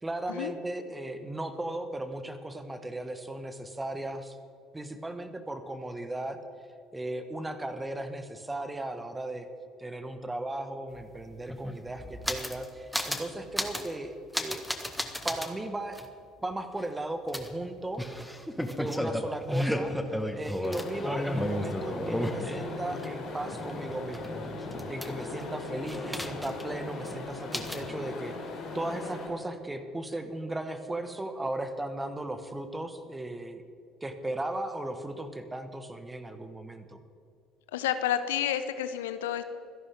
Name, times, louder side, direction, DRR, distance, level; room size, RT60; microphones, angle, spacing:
voice 1, 0.0-4.4 4.7-6.4 6.9-9.5 9.8-14.6 15.2-16.0 16.4-18.0 18.8-19.9 20.3-24.4 24.9-33.6 34.0-37.0, right 1 dB, 15° right, 9 dB, 1.6 m, -36 dB
sound 1, 10.9-11.0 11.2-12.6 12.9-13.3 13.5-13.9 14.3-15.5 15.9-16.1 17.3-23.1 23.4-25.4 25.9-26.7 27.0-27.1 27.5-27.9, equal, ahead, 1.5 m, -33 dB
sound 2, 20.6-29.3, left 3 dB, 50° left, 3.7 m, -39 dB
voice 2, 37.7-39.4, left 10 dB, 70° left, 11 dB, 0.7 m, -30 dB
26.0 x 11.0 x 3.7 m, 2.5 s
figure-of-eight pair, 55°, 0 cm